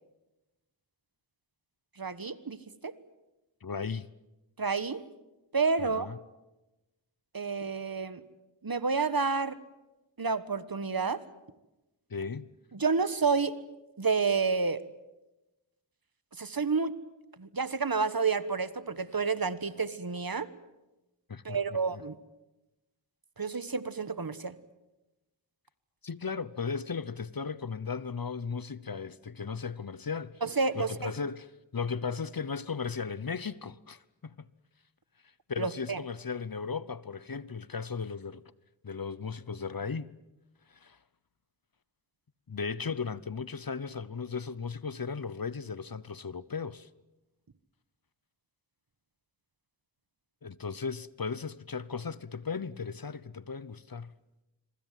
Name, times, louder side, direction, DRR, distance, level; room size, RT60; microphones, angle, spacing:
voice 1, 2.0-2.6 2.8-2.9 4.6-5.0 5.5-6.1 7.3-8.2 8.6-9.6 10.2-11.2 12.7-13.5 14.0-14.8 16.4-16.9 17.4-20.5 21.4-22.2 23.4-24.5 30.4-31.1 35.6-36.0, right 4 dB, 50° right, 1.4 m, -29 dB
voice 2, 3.6-4.1 5.8-6.2 12.1-12.5 21.3-22.0 26.0-30.4 30.7-34.5 35.5-38.4 38.8-40.1 40.7-41.0 42.5-46.9 50.4-54.1, left 5 dB, 50° left, 0.9 m, -36 dB
25.5 x 24.5 x 7.6 m
wide cardioid pair, 50°, 45 cm